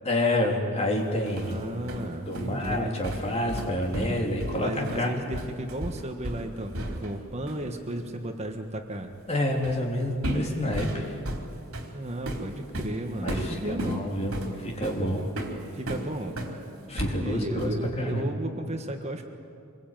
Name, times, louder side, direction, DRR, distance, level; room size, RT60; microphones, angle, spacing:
voice 1, 0.0-1.6 2.3-5.3 9.3-11.2 13.2-15.3 16.9-18.3, left 1 dB, 30° left, 0 dB, 3.3 m, -28 dB
sound 1, 1.0-7.2 7.5-7.7 9.6-9.9 10.2-16.6 17.0-17.9, right 1 dB, 75° right, 3.7 m, -34 dB
voice 2, 1.4-3.0 4.6-9.2 11.9-14.0 15.7-16.3 17.1-19.2, right 1 dB, 30° right, 4 dB, 1.5 m, -34 dB
25.5 x 22.0 x 9.1 m, 2.5 s
head